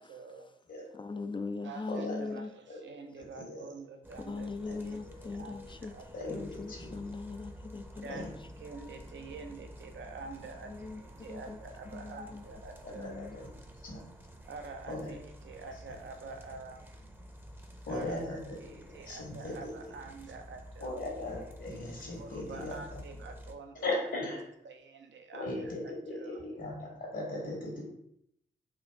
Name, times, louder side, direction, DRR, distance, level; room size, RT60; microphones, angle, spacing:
voice 1, 0.0-0.5 1.6-4.5 4.9-5.0 5.3-5.6 5.9-6.1 8.0-8.3 8.6-13.2 14.5-16.9 17.9-21.1 22.2-23.9 24.3-26.4, right 4 dB, 70° right, 5 dB, 0.6 m, -47 dB
voice 2, 0.9-2.5 4.2-8.5 10.6-12.4 12.9-13.4, left 3 dB, 25° left, 9 dB, 0.3 m, -41 dB
voice 3, 3.1-3.6 4.7-4.8 6.1-6.4 6.7-6.9 8.1-8.3 12.8-13.5 13.8-14.0 14.9-15.1 17.9-19.8 20.8-23.0 23.8-24.4 25.3-27.8, left 2 dB, 65° left, -3 dB, 1.3 m, -38 dB
sound 1, 4.0-23.5, equal, 10° right, 0.7 m, -50 dB
4.2 x 2.4 x 3.4 m, 0.73 s
supercardioid pair, 45°, 20 cm